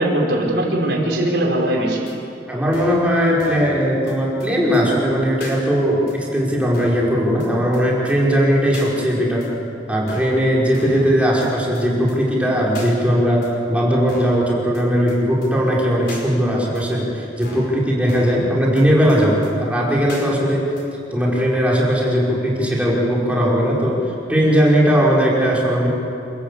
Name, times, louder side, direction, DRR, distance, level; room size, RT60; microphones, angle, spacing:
voice 1, 0.0-2.1, right 1 dB, 70° right, -1 dB, 5.1 m, -20 dB
sound 1, 2.1-2.2 2.7-3.1 3.4-3.7 4.1-4.2 4.4-4.5 4.7-4.8 5.4-5.6 6.1-6.2 6.7-7.1 7.4-7.5 7.7-7.8 8.1-8.2 8.7-8.9 9.4-9.5 10.1-10.4 10.7-11.1 11.4-11.5 11.7-11.8 12.1-12.2 12.7-12.9 13.4-13.5 14.1-14.4 14.7-14.8 15.1-15.2 15.4-15.5 16.1-16.2 16.7-16.8 17.4-17.7 18.1-18.4 18.8-18.9 19.1-19.2 19.4-19.5 20.1-20.3 20.8-20.9, left 2 dB, 65° left, 5.0 m, -37 dB
voice 2, 2.5-9.4 9.9-20.7 21.1-24.0 24.3-25.9, equal, 10° right, -4 dB, 5.1 m, -18 dB
28.0 x 14.5 x 8.4 m, 2.7 s
head